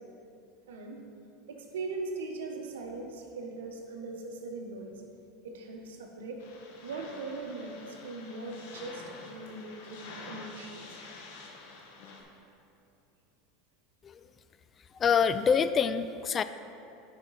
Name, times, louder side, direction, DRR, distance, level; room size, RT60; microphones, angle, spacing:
voice 1, 0.7-1.0 1.5-4.9 5.4-6.4 6.8-10.8, right 3 dB, 85° right, 3 dB, 1.0 m, -40 dB
sound 1, 6.4-12.2, left 3 dB, 70° left, 1.2 m, -48 dB
voice 2, 15.0-16.4, left 6 dB, 30° left, 12 dB, 0.3 m, -25 dB
10.0 x 5.2 x 4.0 m, 2.7 s
hypercardioid pair, 95°, 0 cm